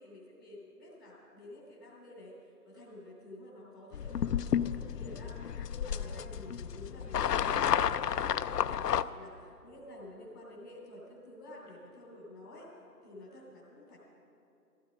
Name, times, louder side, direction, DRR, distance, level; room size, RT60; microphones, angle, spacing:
voice 1, 0.0-12.7 13.0-14.0, left 1 dB, ahead, -10 dB, 0.9 m, -50 dB
sound 1, 3.9-9.0, left 9 dB, 75° left, 0.6 m, -31 dB
15.5 x 15.0 x 5.3 m, 2.8 s
hypercardioid pair, 165°, 49 cm